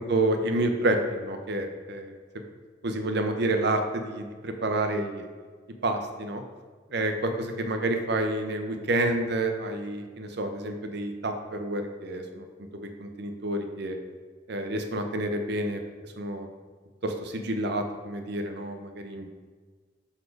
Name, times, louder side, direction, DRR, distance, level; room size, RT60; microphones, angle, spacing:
voice 1, 0.0-2.1 2.8-5.2 5.8-6.4 6.9-12.5 12.7-14.0 14.5-15.8 16.2-16.5 17.0-19.3, right 1 dB, 60° right, 6 dB, 0.7 m, -29 dB
6.3 x 4.2 x 4.7 m, 1.5 s
head